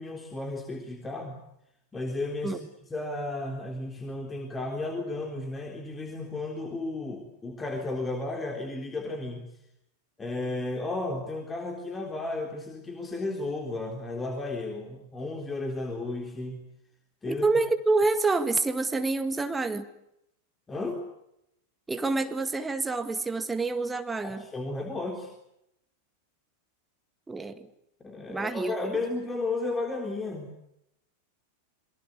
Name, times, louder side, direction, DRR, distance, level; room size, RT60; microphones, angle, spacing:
voice 1, 0.0-1.4 1.9-2.6 2.9-9.5 10.2-16.6 17.2-17.5 20.7-21.1 24.2-25.3 28.0-30.5, left 2 dB, 15° left, 3 dB, 3.8 m, -33 dB
voice 2, 17.3-19.9 21.9-24.5 27.3-27.7 28.3-29.0, right 3 dB, 10° right, 8 dB, 1.9 m, -27 dB
27.0 x 23.0 x 8.3 m, 0.81 s
figure-of-eight pair, 90°, 0 cm